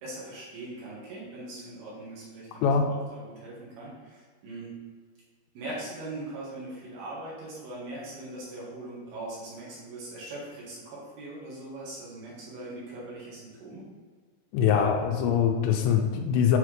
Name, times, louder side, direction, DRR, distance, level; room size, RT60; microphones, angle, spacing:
voice 1, 0.0-4.7 5.5-13.8, right 2 dB, 65° right, -6 dB, 3.4 m, -41 dB
voice 2, 2.6-2.9 14.5-16.6, left 7 dB, 90° left, 3 dB, 3.0 m, -23 dB
8.8 x 4.0 x 3.3 m, 1.5 s
omnidirectional pair, 5.1 m